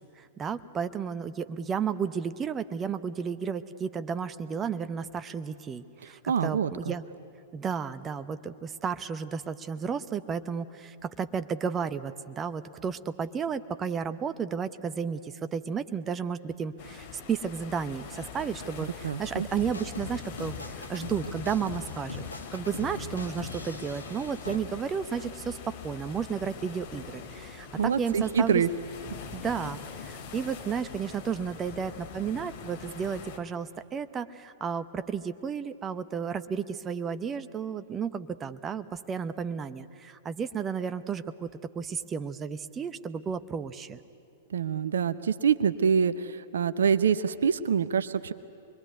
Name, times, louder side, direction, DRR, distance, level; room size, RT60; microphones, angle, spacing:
voice 1, 0.2-7.0 7.5-22.2 22.5-28.6 29.3-44.0, right 6 dB, 20° right, 12 dB, 0.8 m, -33 dB
voice 2, 6.0-6.9 19.0-19.5 27.7-28.7 44.5-48.3, right 7 dB, 65° right, 13 dB, 0.7 m, -26 dB
sound 1, 16.8-33.4, left 6 dB, 40° left, 2.9 m, -43 dB
sound 2, 19.5-24.6, left 3 dB, 85° left, 1.4 m, -41 dB
25.5 x 22.0 x 9.4 m, 2.5 s
figure-of-eight pair, 100°, 0 cm